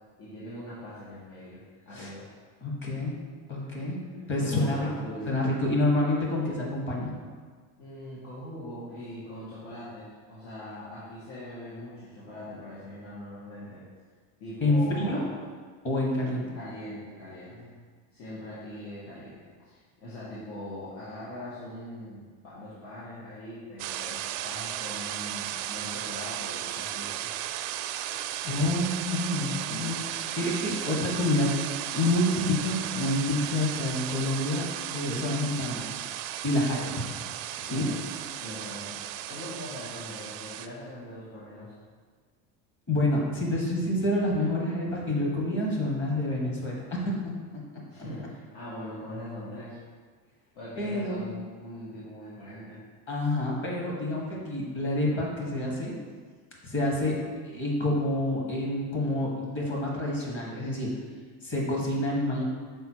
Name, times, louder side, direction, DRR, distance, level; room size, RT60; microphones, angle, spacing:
voice 1, 0.2-2.3 3.6-5.4 7.8-13.9 14.4-15.4 16.5-17.8 18.1-27.3 28.1-28.3 37.7-41.8 47.9-49.8 50.5-52.8, left 1 dB, 80° left, -10 dB, 1.8 m, -41 dB
voice 2, 2.6-3.1 3.5-4.0 4.3-4.9 5.3-7.1 14.6-15.2 15.8-16.4 28.4-31.5 31.9-34.6 34.9-35.9 36.4-36.9 37.6-37.8 42.9-47.3 48.0-48.1 50.8-51.2 53.1-55.9 56.6-57.2 57.5-60.9 61.4-62.4, left 1 dB, 30° left, -2 dB, 1.5 m, -28 dB
sound 1, 23.8-40.7, right 12 dB, 85° right, 0.5 m, -35 dB
5.7 x 4.4 x 4.6 m, 1.6 s
cardioid pair, 165°, 38 cm